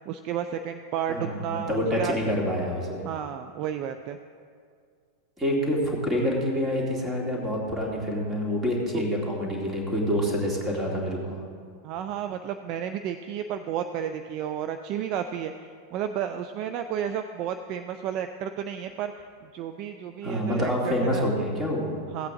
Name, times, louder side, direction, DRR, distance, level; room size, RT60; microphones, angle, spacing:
voice 1, 0.1-2.2 3.0-4.2 11.8-15.5 15.9-19.1 19.4-21.3 22.1-22.3, right 9 dB, 40° right, 8 dB, 0.4 m, -32 dB
voice 2, 1.1-3.0 5.4-11.4 20.2-21.9, equal, 15° right, -1 dB, 2.4 m, -27 dB
16.0 x 8.2 x 3.7 m, 2.2 s
figure-of-eight pair, 90°, 0 cm